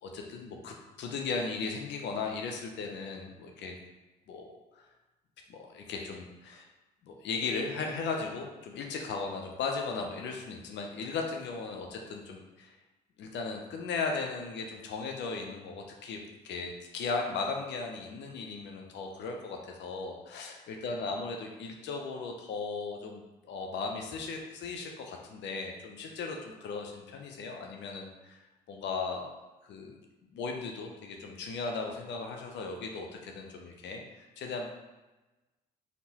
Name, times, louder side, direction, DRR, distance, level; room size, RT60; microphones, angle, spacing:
voice 1, 0.0-3.7 4.3-4.5 4.8-4.9 5.5-6.6 7.0-12.7 13.2-28.4 28.7-29.3 29.6-30.0 30.3-34.7, left 4 dB, 60° left, 2 dB, 0.7 m, -37 dB
4.0 x 3.5 x 2.9 m, 1.1 s
hypercardioid pair, 55°, 21 cm